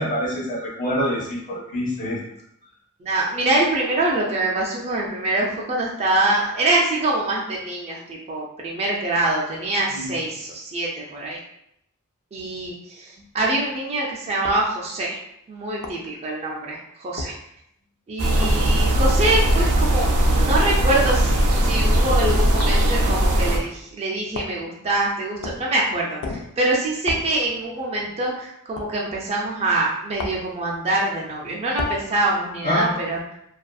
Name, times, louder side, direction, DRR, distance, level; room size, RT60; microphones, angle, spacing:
voice 1, 0.0-2.2 9.9-10.1 32.6-32.9, equal, 35° left, -5 dB, 0.8 m, -25 dB
voice 2, 3.0-11.4 12.3-15.2 15.5-17.3 18.1-21.3 21.6-33.2, right 2 dB, 30° right, -3 dB, 0.4 m, -24 dB
sound 1, 14.4-14.7 15.8-16.1 17.2-17.4 18.4-18.6 19.6-19.8 21.1-21.3 22.6-22.8 24.3-24.6 25.4-25.7 26.2-26.5 27.1-27.3 28.8-28.9 30.2-30.5 31.8-32.0, left 2 dB, 55° left, 0.3 m, -32 dB
sound 2, 18.2-23.6, right 1 dB, 85° right, 0.5 m, -19 dB
2.6 x 2.3 x 2.3 m, 0.75 s
head